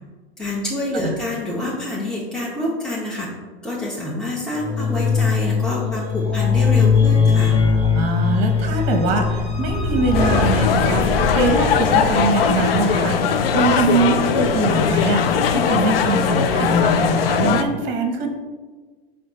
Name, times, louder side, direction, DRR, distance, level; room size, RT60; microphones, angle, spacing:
voice 1, 0.4-3.3 3.6-7.6, left 1 dB, ahead, -6 dB, 0.7 m, -27 dB
sound 1, 4.5-12.8, left 5 dB, 35° left, 1.2 m, -20 dB
voice 2, 7.9-18.3, right 3 dB, 40° right, 4 dB, 0.7 m, -22 dB
sound 2, 10.1-17.6, left 6 dB, 70° left, 0.5 m, -19 dB
5.0 x 2.4 x 3.8 m, 1.4 s
figure-of-eight pair, 90°, 31 cm